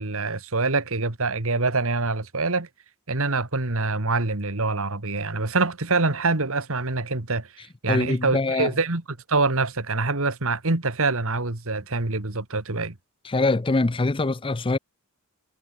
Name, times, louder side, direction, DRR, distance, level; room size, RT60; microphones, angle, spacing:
voice 1, 0.0-2.7 3.1-7.5 7.8-9.0 9.3-12.9, right 3 dB, 65° right, 2.0 m, -25 dB
voice 2, 7.9-8.7 13.2-14.8, left 3 dB, 25° left, 0.6 m, -23 dB
head